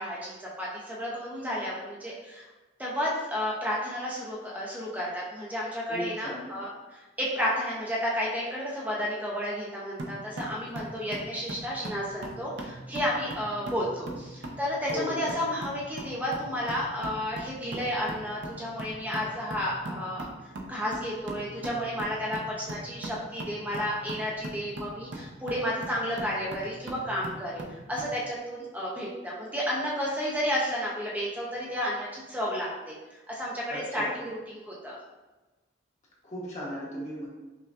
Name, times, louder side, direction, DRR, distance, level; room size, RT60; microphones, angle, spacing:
voice 1, 0.0-2.4 2.8-20.3 20.7-32.9 33.3-34.1 34.5-35.0, equal, 10° right, -5 dB, 0.5 m, -32 dB
voice 2, 5.9-6.5 14.9-15.3 33.7-34.1 36.2-37.3, equal, 40° left, -5 dB, 1.1 m, -36 dB
sound 1, 10.0-28.2, right 1 dB, 80° right, 0.6 m, -41 dB
5.6 x 2.3 x 2.4 m, 1.2 s
head